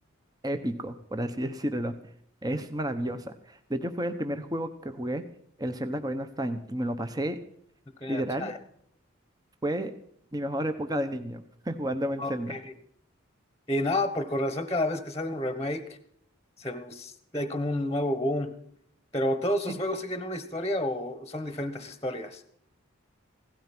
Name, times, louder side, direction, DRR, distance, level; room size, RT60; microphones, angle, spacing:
voice 1, 0.4-2.0 2.4-5.2 5.6-7.4 8.1-8.5 9.6-9.9 10.3-12.6 19.7-19.8, right 1 dB, 20° right, 8 dB, 0.9 m, -31 dB
voice 2, 8.0-8.6 12.2-12.7 13.7-16.0 16.6-18.5 19.1-22.4, left 1 dB, 15° left, 10 dB, 1.1 m, -30 dB
16.5 x 13.0 x 6.0 m, 0.67 s
head